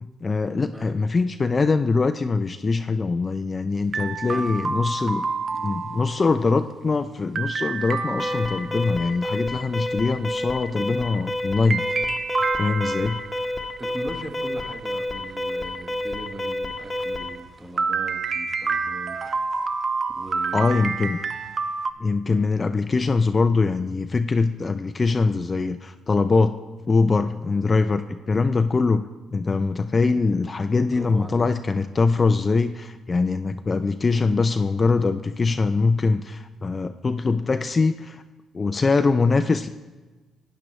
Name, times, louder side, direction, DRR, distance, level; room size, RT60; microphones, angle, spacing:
voice 1, 0.0-5.3 5.6-11.8 12.6-13.2 20.5-21.2 22.0-26.6 26.9-29.0 29.3-38.2 38.5-39.7, left 4 dB, 30° left, 9 dB, 0.3 m, -22 dB
voice 2, 0.7-1.1 4.2-4.6 5.5-5.8 6.4-6.6 13.8-19.2 20.1-21.1 30.9-31.5, right 1 dB, 15° right, 3 dB, 1.2 m, -39 dB
sound 1, 3.9-6.4 7.3-8.9 11.7-13.4 17.8-21.9, right 4 dB, 40° right, 0.5 m, -28 dB
Alarm, 8.2-17.4, left 1 dB, 15° left, 1.1 m, -30 dB
12.0 x 9.0 x 3.1 m, 1.2 s
cardioid pair, 90°, 0 cm